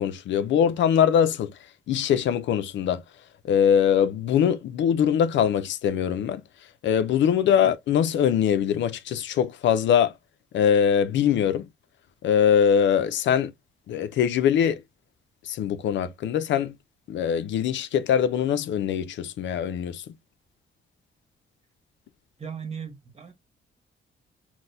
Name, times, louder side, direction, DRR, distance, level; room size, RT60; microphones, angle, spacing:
voice 1, 0.0-1.5 1.9-3.0 3.4-6.4 6.8-10.1 10.5-11.6 12.2-13.5 13.9-14.8 15.5-16.7 17.1-20.0, left 8 dB, 70° left, 0.4 m, -22 dB
voice 2, 22.4-23.3, right 7 dB, 30° right, 1.1 m, -37 dB
4.1 x 2.1 x 2.5 m
cardioid pair, 105°, 20 cm